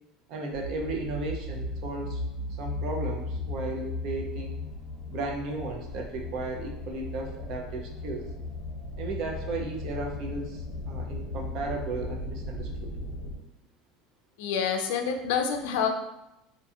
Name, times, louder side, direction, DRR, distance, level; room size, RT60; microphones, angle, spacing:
voice 1, 0.3-2.2 2.6-4.6 5.1-8.3 9.0-12.9, right 3 dB, 40° right, 1 dB, 0.4 m, -35 dB
sound 1, 0.5-13.4, left 2 dB, 25° left, 0.9 m, -36 dB
voice 2, 14.4-15.9, left 7 dB, 90° left, 5 dB, 0.4 m, -27 dB
2.5 x 2.3 x 2.7 m, 0.91 s
cardioid pair, 180°, 0 cm